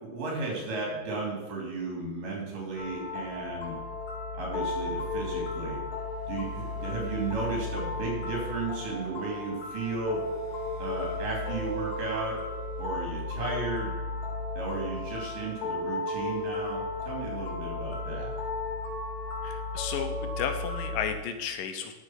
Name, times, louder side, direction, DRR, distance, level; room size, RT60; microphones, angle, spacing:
voice 1, 0.0-3.7 4.3-5.8 6.3-10.2 10.8-12.3 12.8-13.9 14.6-18.3, right 3 dB, 80° right, -1 dB, 4.6 m, -34 dB
sound 1, 2.8-21.1, left 2 dB, 60° left, 2.9 m, -34 dB
voice 2, 19.4-21.9, left 8 dB, 85° left, 7 dB, 2.6 m, -33 dB
10.5 x 6.8 x 5.9 m, 1.1 s
omnidirectional pair, 3.8 m